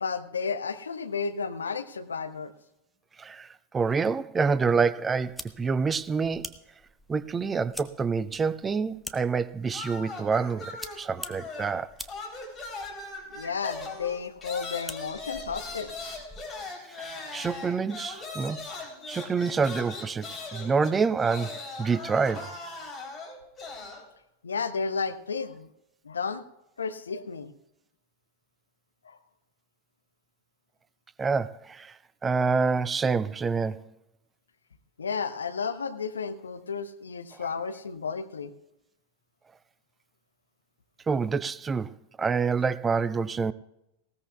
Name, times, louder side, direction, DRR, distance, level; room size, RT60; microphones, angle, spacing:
voice 1, 0.0-2.5 13.3-16.1 24.4-25.7 26.0-26.4 26.8-27.5 29.0-29.2 35.0-38.5, left 5 dB, 70° left, 0.8 m, -32 dB
voice 2, 3.2-6.5 7.1-11.9 17.0-18.6 19.1-22.5 31.2-33.8 37.3-37.5 41.1-43.5, right 5 dB, 15° right, 0.4 m, -27 dB
sound 1, 5.2-16.6, equal, ahead, 0.8 m, -47 dB
sound 2, 9.7-11.8 12.1-24.0, left 3 dB, 20° left, 3.5 m, -40 dB
19.5 x 16.5 x 2.4 m
figure-of-eight pair, 90°, 0 cm